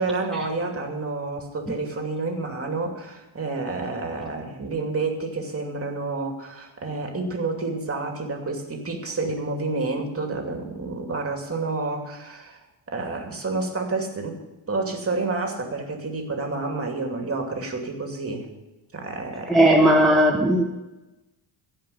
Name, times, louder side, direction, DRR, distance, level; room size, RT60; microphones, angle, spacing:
voice 1, 0.0-12.6 12.9-14.4 14.7-18.5 18.9-20.0, right 3 dB, 25° right, 2 dB, 2.7 m, -29 dB
voice 2, 19.5-20.6, right 1 dB, ahead, -2 dB, 1.3 m, -17 dB
16.0 x 5.6 x 10.0 m, 1.0 s
cardioid pair, 110°, 50 cm